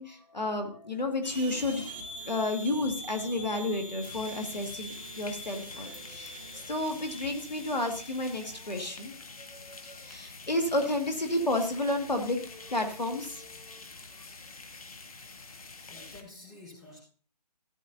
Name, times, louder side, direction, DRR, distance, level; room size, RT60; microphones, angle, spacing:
voice 1, 0.0-1.9 2.3-13.8, left 2 dB, 85° left, 4 dB, 2.2 m, -32 dB
sound 1, 1.2-8.6, equal, 35° right, 2.9 m, -44 dB
sound 2, 4.0-16.2, left 3 dB, 60° left, 1.4 m, -47 dB
voice 2, 15.9-17.0, left 2 dB, ahead, -10 dB, 4.4 m, -50 dB
15.0 x 9.2 x 2.8 m, 0.41 s
figure-of-eight pair, 155°, 21 cm